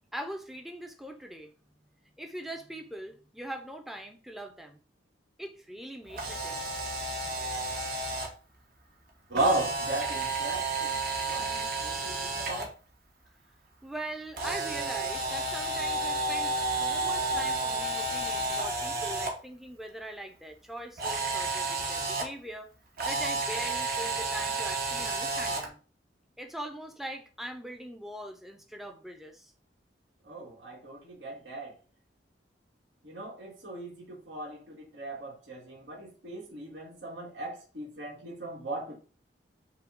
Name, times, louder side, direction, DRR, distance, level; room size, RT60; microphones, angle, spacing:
voice 1, 0.1-1.5 2.2-4.8 5.4-6.7 13.8-22.7 23.0-25.8 26.4-29.5, right 1 dB, ahead, 0.5 m, -41 dB
Camera, 6.1-8.3 9.4-12.7 14.4-19.3 21.0-22.2 23.0-25.7, right 2 dB, 55° right, 1.1 m, -31 dB
voice 2, 9.3-11.0 11.3-12.7 30.2-31.7 33.0-39.0, right 2 dB, 80° right, 1.6 m, -36 dB
5.6 x 2.3 x 3.6 m
head